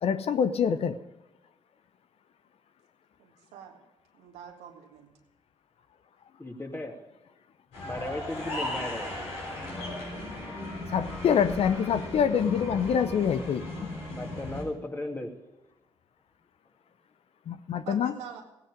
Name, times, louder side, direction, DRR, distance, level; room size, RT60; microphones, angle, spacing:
voice 1, 0.0-1.0 10.9-13.9 17.5-18.1, left 7 dB, 65° left, 11 dB, 0.8 m, -26 dB
voice 2, 3.2-3.8 4.1-5.1 10.8-11.0 17.9-18.4, right 8 dB, 85° right, 3 dB, 1.8 m, -45 dB
voice 3, 6.4-7.0 7.8-9.2 13.9-15.3, left 2 dB, 20° left, 2 dB, 2.7 m, -36 dB
sound 1, 7.7-14.6, left 1 dB, 85° left, 4.5 m, -36 dB
16.5 x 9.9 x 5.1 m, 1.0 s
hypercardioid pair, 45°, 11 cm